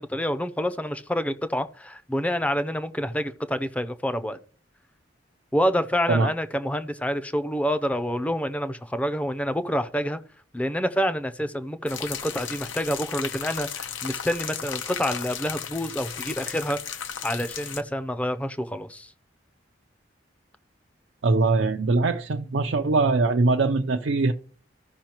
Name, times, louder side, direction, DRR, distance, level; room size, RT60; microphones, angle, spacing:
voice 1, 0.0-4.4 5.5-10.2 10.5-19.1, equal, 5° left, 0.5 m, -28 dB
sound 1, 11.9-17.8, left 8 dB, 85° left, 0.9 m, -35 dB
voice 2, 21.2-24.3, right 3 dB, 75° right, 0.5 m, -22 dB
15.5 x 5.6 x 3.0 m
head